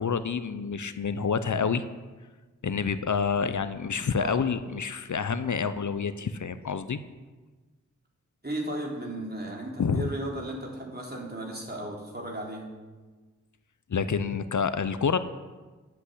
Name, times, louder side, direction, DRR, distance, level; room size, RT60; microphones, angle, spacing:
voice 1, 0.0-1.8 2.6-7.0 9.8-10.1 13.9-15.2, left 6 dB, 65° left, 12 dB, 0.8 m, -28 dB
voice 2, 8.4-12.7, right 1 dB, 30° right, -2 dB, 4.1 m, -35 dB
11.0 x 8.0 x 8.2 m, 1.3 s
cardioid pair, 45°, 32 cm